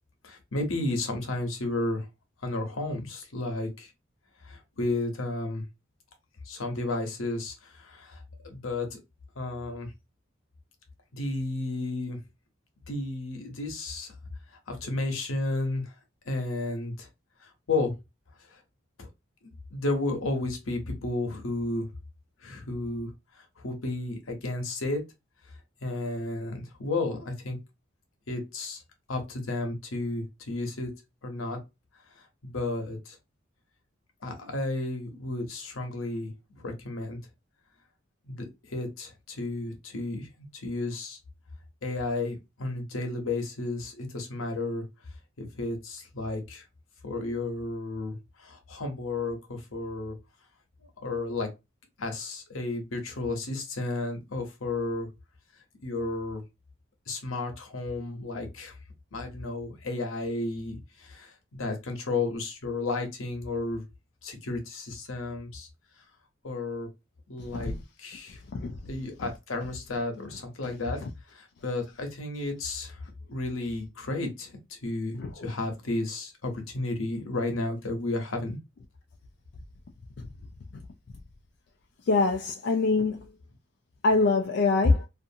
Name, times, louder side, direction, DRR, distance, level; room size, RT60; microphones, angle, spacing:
voice 1, 0.2-2.1 2.4-3.9 4.4-5.6 6.4-9.0 9.4-9.9 11.1-12.2 12.9-14.1 14.7-15.9 16.3-17.1 17.4-17.9 18.4-18.6 19.0-19.1 19.4-21.9 22.4-25.0 25.8-27.6 28.3-28.8 29.1-30.9 31.2-31.6 32.2-33.2 34.2-37.2 38.2-41.2 41.8-44.8 45.4-46.6 47.0-50.1 51.0-51.5 52.0-55.1 55.8-56.4 57.1-58.8 59.1-63.8 64.2-65.7 66.4-66.9 67.3-68.4 68.9-71.0 71.3-78.6, left 2 dB, 85° left, 0.9 m, -33 dB
voice 2, 82.1-83.2 84.0-85.0, left 3 dB, 55° left, 0.3 m, -24 dB
2.6 x 2.5 x 2.7 m
head